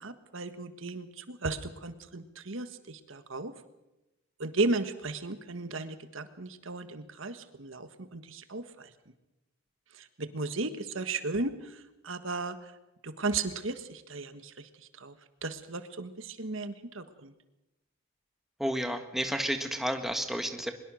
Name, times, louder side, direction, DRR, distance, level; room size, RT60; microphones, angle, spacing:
voice 1, 0.0-3.5 4.4-8.9 9.9-12.7 13.0-14.7 15.0-15.1 15.4-17.3, right 3 dB, 70° right, 10 dB, 1.5 m, -35 dB
voice 2, 18.6-20.7, equal, ahead, 6 dB, 1.6 m, -31 dB
23.5 x 21.5 x 6.4 m, 0.97 s
head